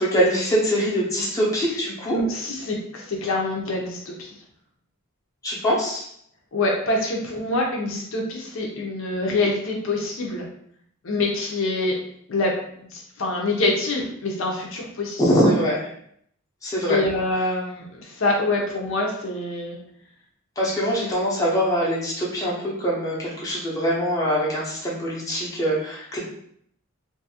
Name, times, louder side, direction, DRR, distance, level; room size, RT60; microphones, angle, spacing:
voice 1, 0.0-2.2 5.4-6.0 15.2-15.9 16.6-17.0 20.6-26.2, equal, 15° left, -6 dB, 0.7 m, -23 dB
voice 2, 2.1-4.2 6.5-10.5 11.0-12.0 12.3-12.5 12.9-15.2 16.9-19.8, left 2 dB, 65° left, -1 dB, 0.6 m, -25 dB
2.6 x 2.4 x 2.8 m, 0.67 s
head